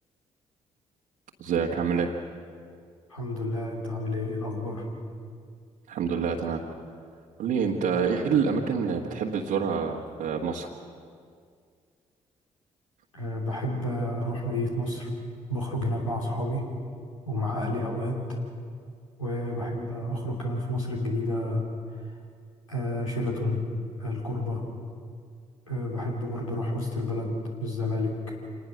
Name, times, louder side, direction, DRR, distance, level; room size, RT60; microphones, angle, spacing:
voice 1, 1.4-2.1 5.9-6.6 7.4-10.7, right 6 dB, 55° right, -3 dB, 1.6 m, -27 dB
voice 2, 3.1-4.8 13.1-15.2 15.5-16.7 17.2-18.4 19.2-22.2 22.7-23.6 24.0-24.6 25.7-28.3, left 1 dB, 85° left, -3 dB, 3.3 m, -30 dB
27.0 x 20.0 x 6.4 m, 2.2 s
figure-of-eight pair, 40°, 17 cm